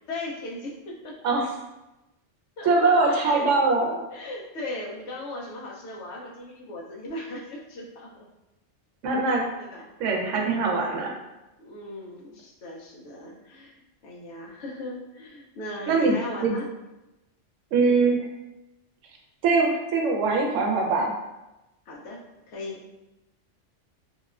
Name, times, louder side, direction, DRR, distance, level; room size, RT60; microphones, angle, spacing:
voice 1, 0.1-1.3 2.6-3.5 4.1-8.3 9.6-9.9 10.9-11.2 11.6-13.8 14.0-16.7 21.9-22.2 22.5-22.8, left 1 dB, 70° left, -2 dB, 0.9 m, -38 dB
voice 2, 2.6-4.0 9.0-9.4 10.0-11.1 15.9-16.1 16.4-16.5 17.7-18.2 19.4-21.1, right 3 dB, 80° right, 0 dB, 0.9 m, -22 dB
2.8 x 2.1 x 2.3 m, 0.97 s
omnidirectional pair, 1.3 m